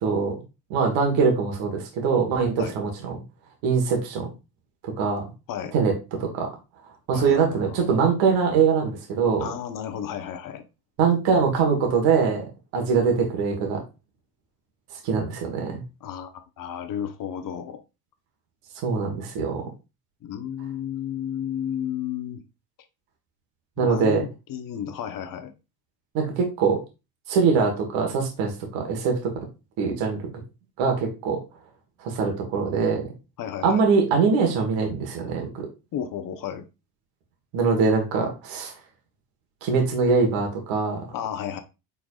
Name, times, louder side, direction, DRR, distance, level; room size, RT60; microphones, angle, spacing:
voice 1, 0.0-0.3 0.7-3.2 3.6-4.3 4.8-5.2 5.7-6.5 7.1-9.5 11.0-12.5 12.7-13.8 15.0-15.8 18.8-19.6 23.8-24.2 26.1-26.8 27.3-29.3 29.8-30.2 30.8-31.4 32.0-33.1 33.6-35.7 37.5-38.7 39.6-41.0, right 5 dB, 65° right, 1.5 m, -23 dB
voice 2, 7.1-7.9 9.4-10.6 16.0-17.8 20.2-22.4 23.8-25.5 33.4-33.8 35.9-36.6 41.1-41.6, left 9 dB, 40° left, 0.9 m, -33 dB
4.6 x 4.0 x 2.4 m
hypercardioid pair, 80°, 48 cm